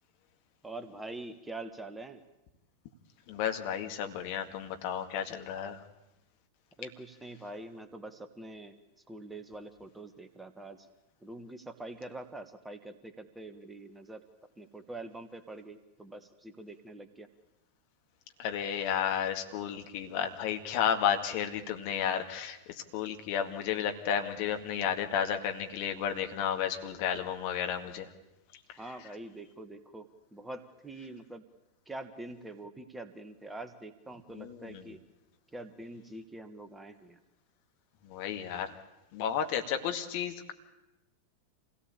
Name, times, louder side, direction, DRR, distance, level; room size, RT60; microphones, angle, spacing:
voice 1, 0.6-2.2 6.8-8.8 9.1-10.9 11.2-14.2 14.6-17.3 28.8-31.4 31.9-35.0 35.5-37.2, right 2 dB, 10° right, 9 dB, 1.5 m, -45 dB
voice 2, 3.3-5.8 18.4-22.6 22.9-28.1 34.4-34.8 38.1-38.7 39.1-40.5, left 8 dB, 45° left, 6 dB, 2.1 m, -32 dB
26.5 x 17.5 x 8.5 m, 0.96 s
figure-of-eight pair, 90°, 0 cm